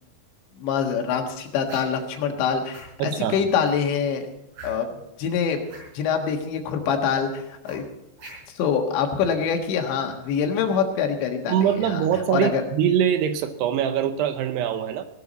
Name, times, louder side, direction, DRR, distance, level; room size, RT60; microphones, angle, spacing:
voice 1, 0.6-4.3 4.6-5.6 5.9-7.9 8.5-12.6, left 6 dB, 80° left, 4 dB, 3.8 m, -25 dB
sound 1, 1.6-2.1 2.7-2.9 3.6-3.9 4.5-5.0 5.6-5.9 7.6-8.6, right 3 dB, 60° right, 7.0 m, -43 dB
voice 2, 3.0-3.4 11.5-15.1, right 9 dB, 75° right, 9 dB, 2.7 m, -23 dB
18.0 x 13.0 x 4.2 m, 0.84 s
omnidirectional pair, 5.2 m